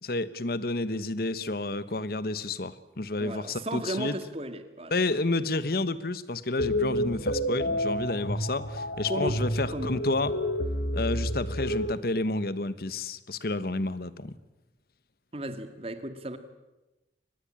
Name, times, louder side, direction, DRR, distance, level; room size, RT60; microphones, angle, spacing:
voice 1, 0.0-4.2 4.9-10.3 10.9-14.3, left 2 dB, 55° left, 16 dB, 1.1 m, -30 dB
voice 2, 3.2-4.9 9.1-9.4 9.7-10.0 15.3-16.4, right 1 dB, 35° right, 9 dB, 1.9 m, -35 dB
sound 1, 6.6-11.9, equal, 75° left, 1.9 m, -30 dB
24.0 x 20.5 x 8.8 m, 1.0 s
head